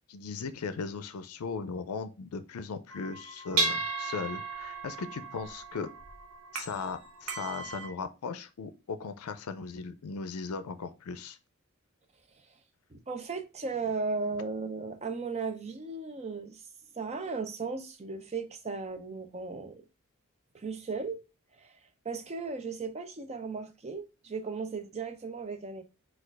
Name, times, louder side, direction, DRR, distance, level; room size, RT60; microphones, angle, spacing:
voice 1, 0.1-5.9 6.5-11.4, left 5 dB, 75° left, 0.4 m, -38 dB
sound 1, 2.9-7.9, right 3 dB, 85° right, 0.8 m, -35 dB
voice 2, 12.9-16.7 16.9-19.8 20.5-21.2 21.5-21.8 22.0-25.8, right 4 dB, 30° right, 0.5 m, -36 dB
4.3 x 2.4 x 4.5 m
head